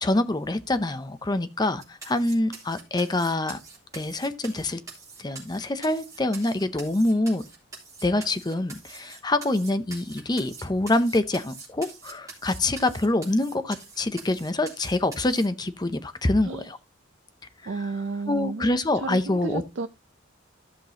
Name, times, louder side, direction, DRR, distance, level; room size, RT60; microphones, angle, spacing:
voice 1, 0.0-3.6 3.9-4.8 5.2-7.4 8.0-16.8 17.8-17.9 18.3-19.6, left 2 dB, 20° left, 0.6 m, -25 dB
sound 1, 1.8-15.5, right 4 dB, 15° right, 3.1 m, -44 dB
voice 2, 17.7-19.9, right 4 dB, 65° right, 0.5 m, -32 dB
14.0 x 6.0 x 2.8 m
head